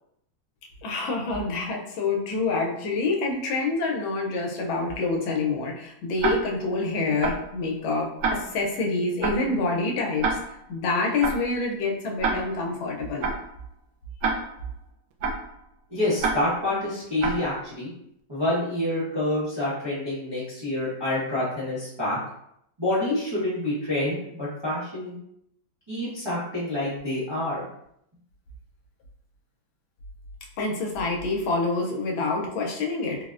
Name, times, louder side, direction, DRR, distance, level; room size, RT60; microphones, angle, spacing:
voice 1, 0.8-10.3 10.7-13.3 30.6-33.2, left 3 dB, 85° left, 0 dB, 1.4 m, -27 dB
Tick-tock, 6.2-6.7 7.2-7.6 8.2-8.7 9.2-9.6 10.2-10.7 11.2-11.6 12.2-12.7 13.2-13.6 14.2-14.7 15.2-15.6 16.2-16.7 17.2-17.6, right 4 dB, 85° right, 0.8 m, -28 dB
voice 2, 15.9-17.9 18.3-22.2 22.8-25.1 25.9-27.6, left 1 dB, 25° right, -10 dB, 0.6 m, -27 dB
3.8 x 2.0 x 2.4 m, 0.74 s
omnidirectional pair, 2.1 m